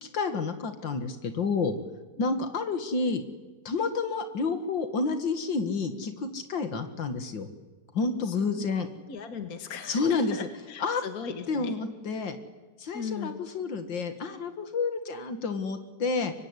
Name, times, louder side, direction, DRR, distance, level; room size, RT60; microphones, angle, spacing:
voice 1, 0.0-1.8 2.2-3.2 3.7-7.5 7.9-8.9 9.9-10.4 10.8-11.0 11.5-12.4 12.8-16.3, left 4 dB, 90° left, 8 dB, 2.6 m, -29 dB
voice 2, 8.2-8.6 9.1-11.8 12.1-12.2 12.9-13.4, left 6 dB, 55° left, 7 dB, 2.1 m, -38 dB
24.5 x 24.0 x 9.9 m, 1.3 s
omnidirectional pair, 1.9 m